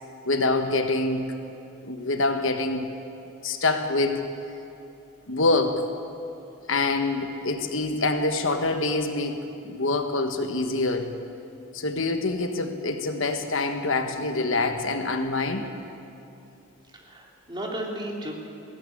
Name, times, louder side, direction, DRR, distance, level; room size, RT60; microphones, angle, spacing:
voice 1, 0.2-1.4 1.8-2.9 3.4-4.3 5.3-5.9 6.7-11.1 11.7-15.8, left 2 dB, 60° left, 6 dB, 1.4 m, -25 dB
voice 2, 16.8-18.3, right 1 dB, 20° right, -1 dB, 3.1 m, -34 dB
20.0 x 16.5 x 9.9 m, 2.9 s
head